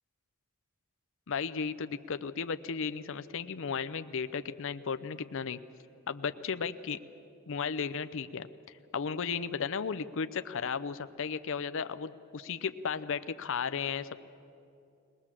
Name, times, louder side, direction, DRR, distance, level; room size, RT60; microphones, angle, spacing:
voice 1, 1.3-5.6 6.1-7.0 7.5-8.5 8.9-14.2, left 6 dB, 65° left, 12 dB, 0.6 m, -34 dB
21.5 x 19.0 x 7.4 m, 2.7 s
head